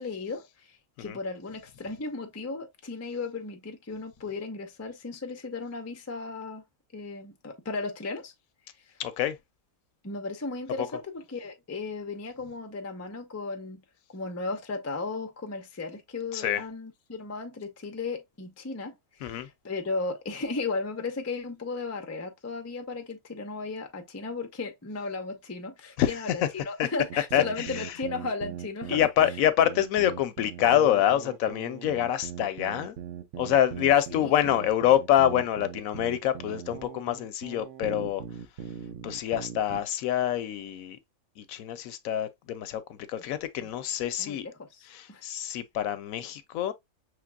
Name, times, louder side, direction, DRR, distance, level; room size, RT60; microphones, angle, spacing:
voice 1, 0.0-6.6 6.9-8.3 8.7-9.0 10.0-13.8 14.1-29.1 34.1-34.6 43.6-43.7 44.2-45.2, left 3 dB, 25° left, 0.3 m, -35 dB
voice 2, 9.0-9.4 10.8-10.9 16.3-16.6 19.2-19.5 26.0-26.1 26.4-26.5 26.8-26.9 27.3-27.4 28.9-32.9 33.4-38.2 39.0-41.0 41.4-44.5 44.9-46.7, left 11 dB, 75° left, 1.0 m, -26 dB
sound 1, 27.1-39.8, right 10 dB, 65° right, 0.9 m, -40 dB
5.7 x 3.2 x 2.2 m
omnidirectional pair, 1.5 m